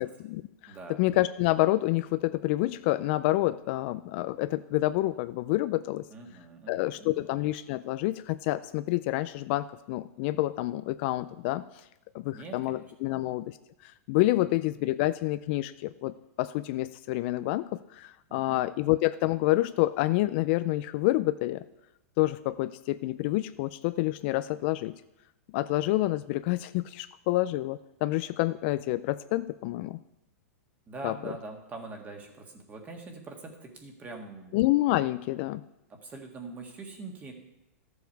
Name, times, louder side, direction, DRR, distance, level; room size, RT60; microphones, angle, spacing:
voice 1, 0.0-6.0 6.7-11.8 12.1-13.6 13.8-21.6 22.2-24.9 25.5-30.0 31.0-31.3 34.5-35.6, left 17 dB, 45° left, 13 dB, 0.4 m, -28 dB
voice 2, 0.7-1.0 6.1-7.3 12.3-13.2 14.4-14.5 18.3-18.8 30.9-34.6 35.9-37.3, right 3 dB, 20° right, 3 dB, 1.7 m, -44 dB
13.5 x 7.1 x 4.6 m, 0.90 s
hypercardioid pair, 140°, 8 cm